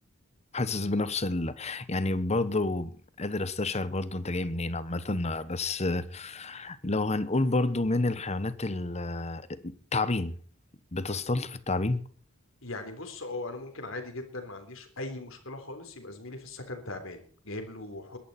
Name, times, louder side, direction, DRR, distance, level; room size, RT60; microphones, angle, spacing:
voice 1, 0.5-10.3 10.9-12.0, left 2 dB, 35° left, 1.2 m, -30 dB
voice 2, 12.6-18.2, left 2 dB, 80° left, 3.6 m, -39 dB
22.0 x 11.5 x 4.4 m
head